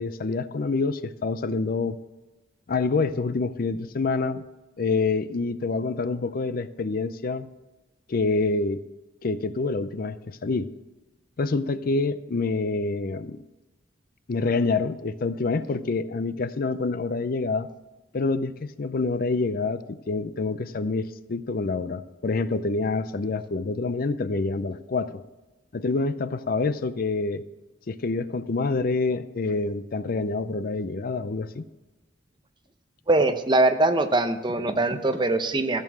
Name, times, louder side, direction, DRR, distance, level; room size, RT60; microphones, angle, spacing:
voice 1, 0.0-2.0 2.7-4.4 4.8-7.5 8.1-8.8 9.2-10.7 11.4-13.4 14.3-17.7 18.1-25.2 25.7-27.4 27.9-31.6, left 3 dB, 50° left, 14 dB, 0.5 m, -27 dB
voice 2, 33.1-35.8, right 2 dB, 25° right, 8 dB, 0.7 m, -22 dB
14.0 x 6.9 x 6.1 m, 1.1 s
head